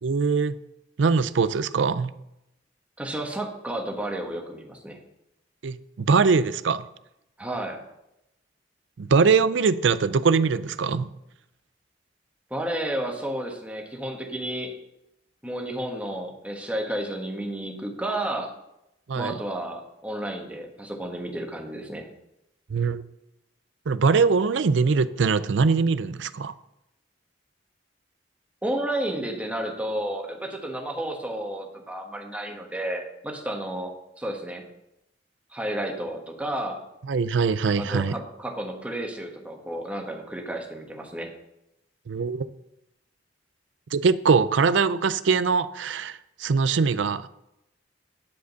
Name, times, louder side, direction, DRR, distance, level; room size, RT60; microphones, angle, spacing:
voice 1, 0.0-0.6 1.0-2.1 5.6-6.8 9.0-11.1 19.1-19.4 22.7-23.0 23.9-26.5 37.0-38.2 42.1-42.5 43.9-47.3, right 5 dB, 85° right, 15 dB, 0.5 m, -22 dB
voice 2, 3.0-5.0 7.4-7.8 12.5-14.7 15.4-18.5 19.1-22.1 28.6-33.9 34.2-34.6 35.5-36.8 37.7-41.3, right 1 dB, 10° right, 1 dB, 1.4 m, -32 dB
10.5 x 5.1 x 6.7 m, 0.86 s
head